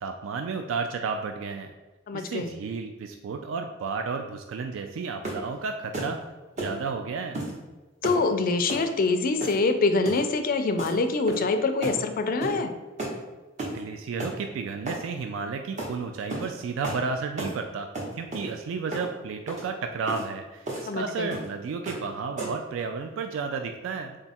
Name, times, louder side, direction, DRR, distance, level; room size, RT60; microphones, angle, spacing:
voice 1, 0.0-1.7 2.1-6.2 6.6-7.4 13.7-17.9 18.2-20.7 20.9-24.2, right 5 dB, 70° right, 5 dB, 0.3 m, -32 dB
voice 2, 2.1-2.5 8.0-12.7 20.9-21.3, left 3 dB, 45° left, 8 dB, 0.4 m, -25 dB
sound 1, 5.2-5.5 5.9-6.1 6.6-6.8 7.3-7.5 8.0-8.2 8.7-8.9 9.4-9.7 10.0-10.3 10.8-11.0 11.3-11.5 11.8-12.0 12.4-12.6 13.0-13.2 13.6-13.8 14.2-14.4 14.9-15.0 15.8-15.9 16.3-16.5 16.8-17.0 17.4-17.6 17.9-18.5 18.9-19.1 19.5-19.6 20.1-20.2 20.7-20.9 21.3-21.5 21.9-22.1 22.4-22.7, right 1 dB, 35° right, 0.9 m, -33 dB
3.8 x 2.3 x 4.2 m, 1.2 s
head